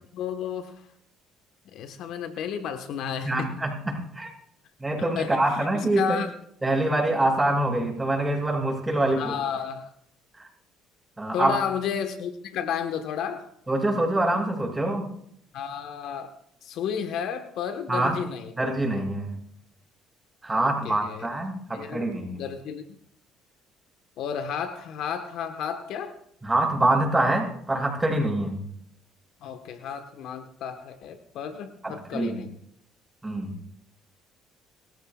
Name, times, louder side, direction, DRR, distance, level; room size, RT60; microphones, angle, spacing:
voice 1, 0.1-0.8 1.7-3.5 5.1-5.4 5.7-6.3 7.2-7.3 9.2-9.9 11.3-13.5 15.5-16.3 16.6-18.5 20.5-21.3 21.7-22.8 24.2-26.1 29.4-32.5, left 7 dB, 70° left, 8 dB, 1.3 m, -32 dB
voice 2, 3.2-4.3 4.8-6.2 6.6-9.3 10.4-10.5 11.2-11.5 13.7-15.1 17.9-18.2 18.6-19.3 20.4-22.4 26.4-28.6 31.8-32.4 33.2-33.5, right 1 dB, 15° right, 0 dB, 6.8 m, -25 dB
26.5 x 14.5 x 2.4 m, 0.69 s
supercardioid pair, 70°, 0 cm